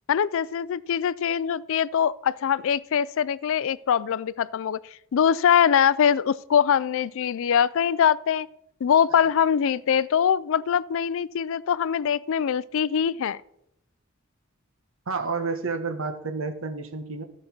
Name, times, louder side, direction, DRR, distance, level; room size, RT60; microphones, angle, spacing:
voice 1, 0.1-4.8 5.1-8.5 8.8-13.4, left 8 dB, 65° left, 0.4 m, -23 dB
voice 2, 15.1-17.2, right 4 dB, 65° right, 1.2 m, -30 dB
13.5 x 5.2 x 6.0 m
head